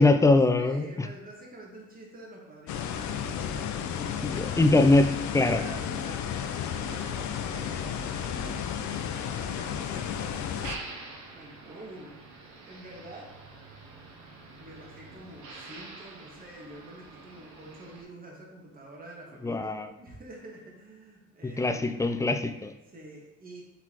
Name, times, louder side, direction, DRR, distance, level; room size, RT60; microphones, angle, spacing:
voice 1, 0.0-0.9 4.2-5.6 19.4-19.9 21.4-22.7, left 2 dB, 10° left, 8 dB, 0.3 m, -22 dB
voice 2, 0.6-4.5 5.5-10.5 11.3-12.2 12.7-13.3 14.6-21.9 22.9-23.6, right 1 dB, 30° right, -2 dB, 1.3 m, -47 dB
sound 1, 2.7-10.8, left 8 dB, 70° left, 0.5 m, -33 dB
Motor vehicle (road), 6.3-18.0, right 3 dB, 75° right, 1.0 m, -47 dB
4.6 x 4.1 x 2.9 m, 0.99 s
cardioid pair, 90°, 30 cm